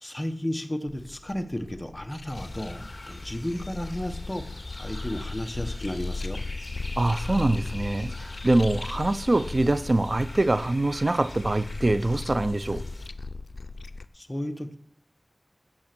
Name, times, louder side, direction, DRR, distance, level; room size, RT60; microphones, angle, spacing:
voice 1, 0.0-6.4 14.1-14.8, left 1 dB, 20° left, 6 dB, 1.2 m, -33 dB
sound 1, 0.9-14.1, left 3 dB, 90° left, 0.4 m, -38 dB
sound 2, 2.3-13.1, left 2 dB, 45° left, 2.2 m, -42 dB
voice 2, 7.0-12.8, right 2 dB, 50° right, 13 dB, 0.7 m, -24 dB
16.0 x 6.4 x 6.1 m, 0.71 s
wide cardioid pair, 60°, 0 cm